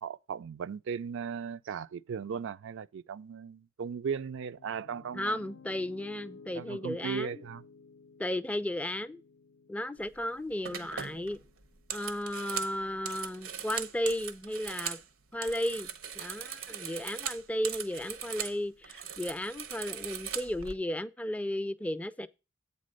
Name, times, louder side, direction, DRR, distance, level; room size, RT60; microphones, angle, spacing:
voice 1, 0.0-5.4 6.5-7.6, right 6 dB, 65° right, 0.4 m, -37 dB
Piano, 4.6-12.7, left 4 dB, 70° left, 0.5 m, -55 dB
voice 2, 5.1-7.3 8.2-9.2 9.7-11.4 11.9-15.0 15.3-22.3, left 1 dB, 5° left, 0.3 m, -34 dB
sound 1, 10.0-10.2 10.6-15.0 15.3-18.6 18.8-20.7, right 8 dB, 80° right, 0.9 m, -40 dB
8.2 x 4.2 x 6.3 m
head